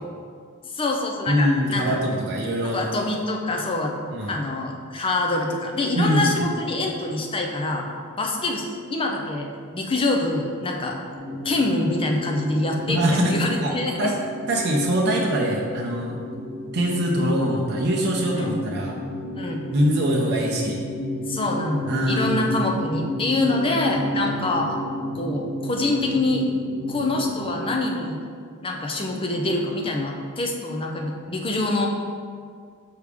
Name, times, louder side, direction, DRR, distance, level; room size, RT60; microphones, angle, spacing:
voice 1, 0.7-2.0 2.7-7.9 8.2-9.5 9.7-11.0 11.4-14.1 18.4-18.5 19.3-19.6 21.3-24.7 25.2-26.5 26.9-28.2 28.6-31.9, left 2 dB, 25° left, 1 dB, 0.6 m, -25 dB
voice 2, 1.3-2.8 4.1-4.3 6.0-6.3 12.9-13.3 13.6-13.7 14.0-14.2 14.5-16.2 16.7-18.9 19.7-20.8 21.9-22.5, equal, 50° right, -2 dB, 0.6 m, -23 dB
sound 1, 11.1-27.8, left 1 dB, 55° left, 1.1 m, -32 dB
6.6 x 4.8 x 3.5 m, 2.1 s
head